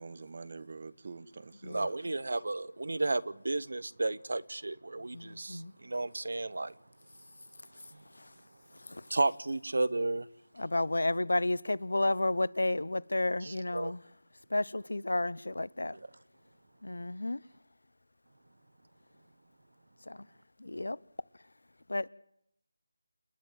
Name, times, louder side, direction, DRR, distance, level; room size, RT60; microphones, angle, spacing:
voice 1, 0.0-2.0 13.4-13.6, right 4 dB, 45° right, 1.2 m, -45 dB
voice 2, 1.7-6.7 7.9-8.0 9.1-10.3 13.7-13.9, right 2 dB, 70° right, 0.9 m, -32 dB
voice 3, 5.1-5.7 7.7-8.4 8.7-9.2 10.5-14.0 14.5-16.0 16.8-17.4 20.0-20.3 20.6-21.0 21.9-22.1, left 2 dB, 80° left, 0.8 m, -32 dB
29.0 x 10.5 x 9.3 m
figure-of-eight pair, 165°, 0 cm